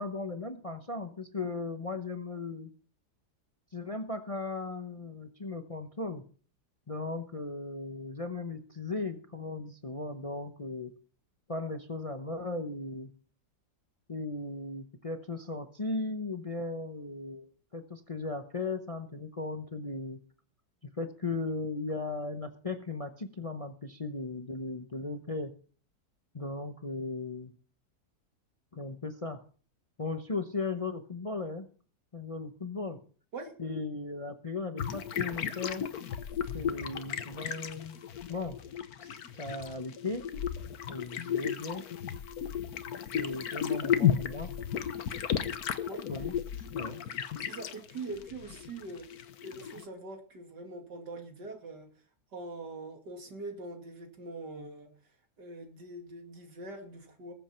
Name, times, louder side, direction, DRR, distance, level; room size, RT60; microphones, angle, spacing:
voice 1, 0.0-2.7 3.7-6.2 6.9-10.9 11.5-13.1 14.1-20.2 20.9-25.5 26.3-27.5 28.7-29.4 30.0-31.7 32.1-33.0 33.6-35.9 36.5-38.0 38.3-38.6 39.0-39.1 39.4-40.3 40.9-41.8 43.1-44.5 46.1-46.3 46.7-47.0, left 3 dB, 30° left, 7 dB, 0.7 m, -37 dB
sound 1, 34.8-49.8, left 9 dB, 65° left, 1.4 m, -34 dB
voice 2, 47.4-49.1 49.4-51.9 52.3-54.9 55.4-57.3, right 2 dB, 85° right, 3 dB, 3.1 m, -43 dB
20.5 x 8.0 x 4.4 m, 0.42 s
omnidirectional pair, 1.8 m